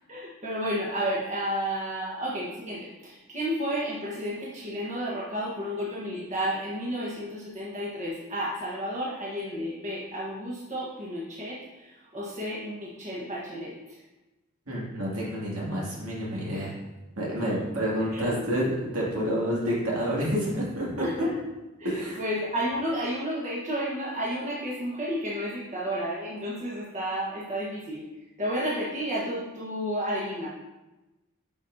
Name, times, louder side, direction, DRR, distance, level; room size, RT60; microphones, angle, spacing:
voice 1, 0.1-14.0 16.5-16.7 18.1-18.4 21.0-21.4 21.8-21.9 22.2-28.0 28.4-30.5, equal, 35° right, -6 dB, 1.3 m, -32 dB
voice 2, 14.7-16.7 17.2-21.3 21.8-22.2, equal, 75° right, -5 dB, 2.4 m, -29 dB
8.4 x 5.6 x 2.7 m, 1.1 s
head